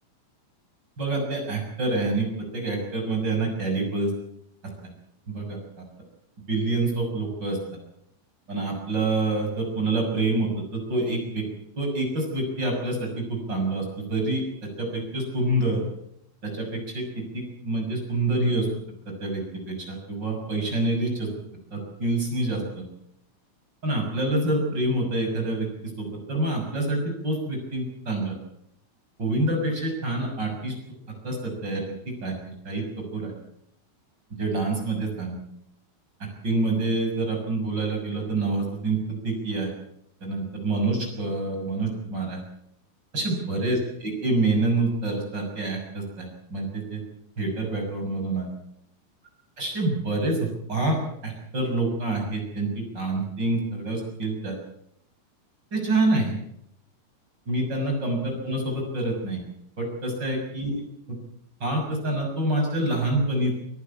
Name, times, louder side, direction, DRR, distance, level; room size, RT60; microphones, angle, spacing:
voice 1, 1.0-2.3 2.5-4.1 5.3-5.6 6.5-7.6 8.5-11.4 11.8-15.8 16.4-16.7 16.9-17.0 17.3-18.7 19.2-21.3 21.7-22.8 23.8-25.7 26.0-28.4 29.2-30.7 31.2-31.8 32.2-32.8 33.1-33.3 34.4-35.4 36.4-39.7 40.2-42.4 43.1-47.0 47.4-48.5 49.6-51.0 51.2-54.6 55.7-56.3 57.5-59.4 59.8-60.8 61.6-63.6, right 2 dB, 30° right, 2 dB, 7.1 m, -27 dB
26.0 x 14.5 x 8.5 m, 0.76 s
omnidirectional pair, 4.2 m